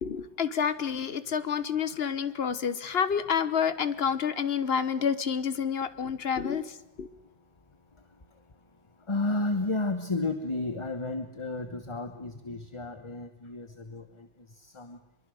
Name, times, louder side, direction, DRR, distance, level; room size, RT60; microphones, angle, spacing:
voice 1, 0.0-7.1, left 7 dB, 50° left, 13 dB, 1.2 m, -29 dB
voice 2, 9.1-14.3 14.6-15.0, left 2 dB, 25° left, 8 dB, 1.0 m, -32 dB
24.5 x 22.5 x 6.5 m, 0.96 s
omnidirectional pair, 1.5 m